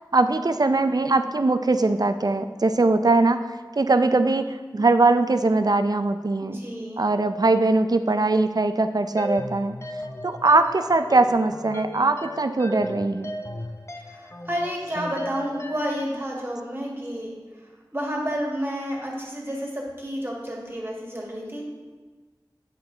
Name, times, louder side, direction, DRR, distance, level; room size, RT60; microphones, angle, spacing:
voice 1, 0.1-3.5 3.8-6.6 7.0-9.8 10.2-13.3, right 3 dB, 55° right, 9 dB, 0.5 m, -21 dB
voice 2, 6.4-7.0 14.0-17.3 17.6-21.6, equal, 30° right, -2 dB, 1.9 m, -30 dB
sound 1, 9.2-16.0, left 1 dB, 35° left, 0.6 m, -37 dB
9.0 x 5.7 x 3.9 m, 1.3 s
wide cardioid pair, 45°, 8 cm